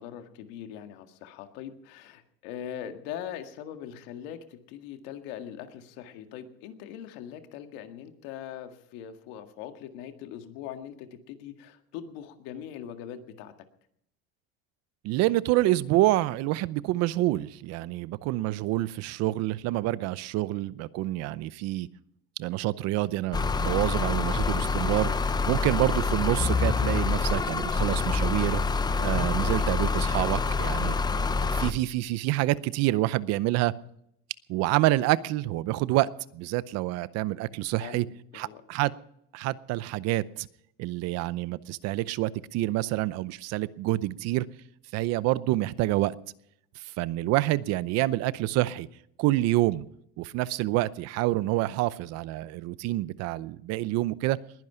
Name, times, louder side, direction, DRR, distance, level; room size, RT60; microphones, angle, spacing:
voice 1, 0.0-13.5 37.8-38.6, left 9 dB, 80° left, 7 dB, 1.9 m, -41 dB
voice 2, 15.0-21.9 22.4-25.1 25.5-28.6 29.0-30.9 31.5-33.7 34.5-38.1 38.3-38.9 39.3-40.5 40.8-44.5 44.9-46.2 46.8-48.9 49.2-49.9 50.2-54.4, right 17 dB, 60° right, 18 dB, 0.7 m, -27 dB
sound 1, 23.3-31.7, left 4 dB, 15° left, 0.6 m, -26 dB
21.0 x 10.5 x 5.7 m, 0.74 s
cardioid pair, 145°, 29 cm